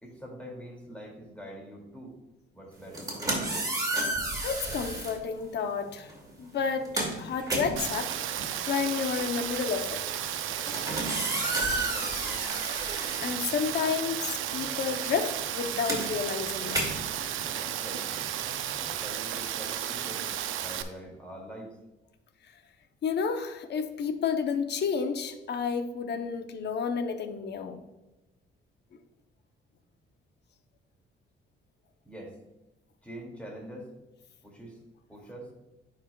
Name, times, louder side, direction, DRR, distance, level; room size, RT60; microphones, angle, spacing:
voice 1, 0.0-2.2 2.5-3.5 10.8-11.1 11.4-12.5 17.6-18.2 18.7-20.3 20.6-21.8 32.0-32.4 33.0-33.9 34.4-34.8 35.1-35.5, equal, 5° left, -1 dB, 2.4 m, -44 dB
sound 1, 2.8-5.2 6.1-6.3 6.6-14.1 14.4-19.0, right 2 dB, 20° right, 2.3 m, -33 dB
voice 2, 4.4-6.1 6.4-8.1 8.7-10.0 13.2-16.8 23.0-27.8, left 6 dB, 60° left, 7 dB, 0.8 m, -31 dB
Rain, 7.8-20.8, right 10 dB, 80° right, 0.5 m, -33 dB
10.5 x 4.9 x 2.3 m, 0.99 s
cardioid pair, 90°, 20 cm